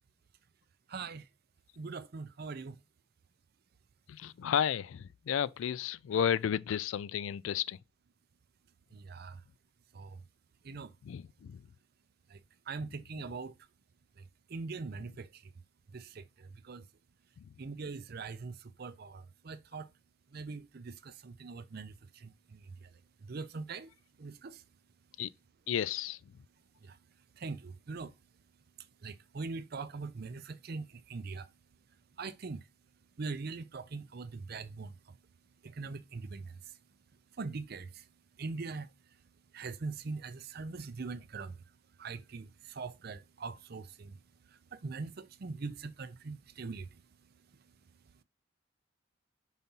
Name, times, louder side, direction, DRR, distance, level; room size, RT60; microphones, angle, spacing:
voice 1, 0.9-1.3 1.8-2.8 8.9-9.4 9.9-10.2 10.6-10.9 12.3-12.4 12.7-13.6 14.5-15.5 15.9-16.9 17.6-19.9 20.3-22.9 23.2-23.9 24.2-24.6 26.8-27.0 27.4-28.1 29.0-31.5 32.2-32.7 33.2-35.2 35.6-36.6 37.4-38.1 38.4-38.9 39.5-41.6 42.0-44.2 44.7-47.0, right 4 dB, 50° right, 0.5 m, -42 dB
voice 2, 4.1-7.8 11.0-11.7 17.4-17.5 25.2-25.3 25.7-26.2, left 8 dB, 75° left, 0.3 m, -33 dB
5.8 x 4.0 x 5.4 m
head